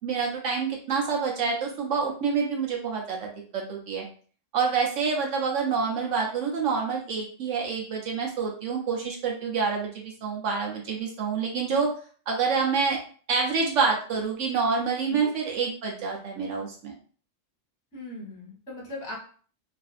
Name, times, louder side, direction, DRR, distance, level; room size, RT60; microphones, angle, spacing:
voice 1, 0.0-4.0 4.5-11.9 12.3-13.0 13.3-16.9, right 5 dB, 75° right, -1 dB, 0.9 m, -27 dB
voice 2, 17.9-19.2, left 1 dB, 20° left, -4 dB, 0.8 m, -38 dB
2.5 x 2.5 x 2.4 m, 0.43 s
omnidirectional pair, 1.3 m